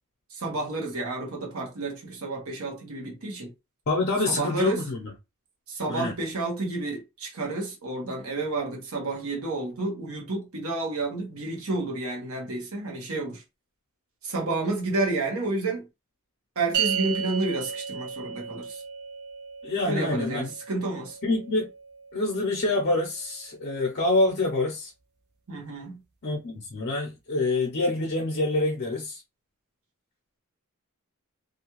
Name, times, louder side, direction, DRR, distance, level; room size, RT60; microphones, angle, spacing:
voice 1, 0.3-3.5 4.3-4.8 5.7-13.4 14.2-15.9 16.6-18.8 19.8-21.2 25.5-26.0, right 2 dB, 75° right, 1.0 m, -30 dB
voice 2, 3.9-5.1 5.9-6.1 19.6-20.5 21.2-21.7 22.1-24.9 26.2-29.2, left 2 dB, 50° left, 0.6 m, -26 dB
sound 1, 16.7-23.3, right 7 dB, 50° right, 0.7 m, -35 dB
2.5 x 2.2 x 2.9 m
head